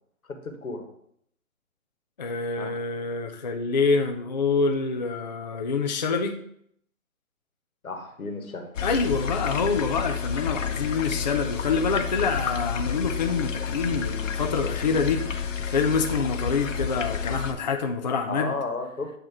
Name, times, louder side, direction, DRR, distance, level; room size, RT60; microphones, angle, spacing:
voice 1, 0.3-0.9 2.6-2.7 7.8-8.7 18.3-19.1, left 3 dB, 85° left, 4 dB, 1.5 m, -33 dB
voice 2, 2.2-6.4 8.8-18.5, left 4 dB, 35° left, 4 dB, 0.4 m, -26 dB
sound 1, 8.8-17.5, left 7 dB, 65° left, 1.0 m, -30 dB
8.7 x 2.9 x 6.0 m, 0.70 s
hypercardioid pair, 145°, 42 cm